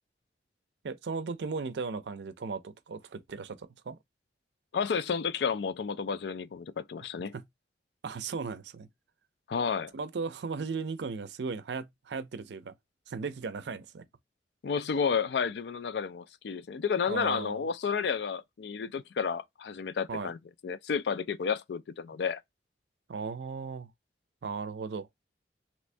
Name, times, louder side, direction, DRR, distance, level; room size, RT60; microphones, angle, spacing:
voice 1, 0.8-4.0 7.3-7.5 8.0-8.9 9.9-12.7 13.1-14.1 17.1-17.6 20.1-20.3 23.1-23.9 24.4-25.1, right 4 dB, 80° right, 0.5 m, -36 dB
voice 2, 4.7-7.3 9.5-9.9 14.6-20.4 20.6-22.4, left 6 dB, 75° left, 0.4 m, -31 dB
3.0 x 2.6 x 3.2 m
head